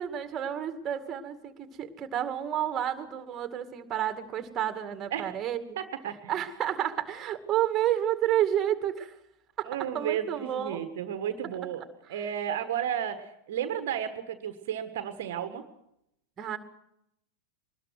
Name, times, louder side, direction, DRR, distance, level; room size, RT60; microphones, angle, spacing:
voice 1, 0.0-5.8 6.3-9.1 9.6-9.7 9.9-10.8 16.4-16.6, right 11 dB, 25° right, 8 dB, 2.2 m, -30 dB
voice 2, 5.1-5.4 5.8-6.4 9.6-11.8 12.1-15.7, right 9 dB, 55° right, 9 dB, 1.5 m, -33 dB
23.5 x 20.5 x 6.2 m, 0.79 s
figure-of-eight pair, 90°, 0 cm